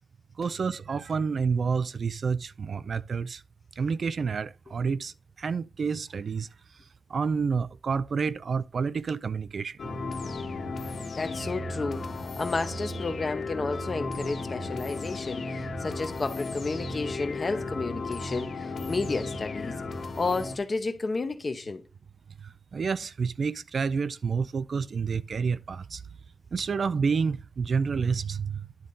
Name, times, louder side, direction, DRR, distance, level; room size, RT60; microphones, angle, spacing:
voice 1, 0.4-3.4 3.8-5.1 5.4-6.5 7.1-9.8 22.7-26.0 26.5-28.7, right 5 dB, 60° right, 0.4 m, -29 dB
sound 1, 9.8-20.6, left 3 dB, 75° left, 1.5 m, -35 dB
voice 2, 10.9-19.8 20.2-21.8, left 3 dB, 40° left, 0.8 m, -32 dB
10.5 x 3.8 x 5.4 m
wide cardioid pair, 160°, 0 cm